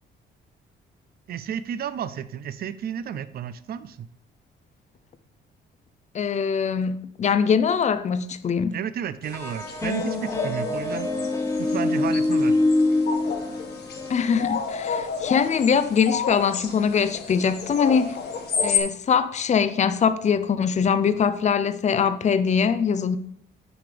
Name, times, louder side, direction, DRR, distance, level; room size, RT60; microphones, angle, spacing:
voice 1, 1.3-4.1 8.7-11.1 11.6-12.6, right 9 dB, 50° right, 0.5 m, -32 dB
voice 2, 6.1-8.8 14.1-18.2 18.6-23.2, left 6 dB, 35° left, 0.5 m, -22 dB
sound 1, 9.2-18.8, left 6 dB, 55° left, 1.3 m, -31 dB
sound 2, 9.3-14.5, left 2 dB, 15° left, 0.9 m, -25 dB
6.9 x 5.0 x 5.1 m
cardioid pair, 90°, 20 cm